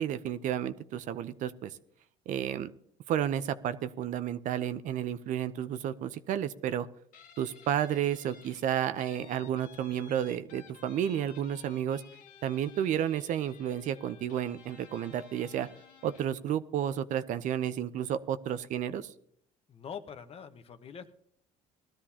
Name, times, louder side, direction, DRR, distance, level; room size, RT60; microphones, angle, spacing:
voice 1, 0.0-1.8 2.3-2.7 3.1-6.9 7.4-12.0 12.4-15.7 16.0-19.1, right 10 dB, 65° right, 14 dB, 0.7 m, -31 dB
Guitar, 7.1-16.4, left 7 dB, 75° left, 1.8 m, -55 dB
voice 2, 19.7-21.1, left 7 dB, 45° left, 9 dB, 1.2 m, -44 dB
19.0 x 13.0 x 2.9 m, 0.65 s
supercardioid pair, 95°, 14 cm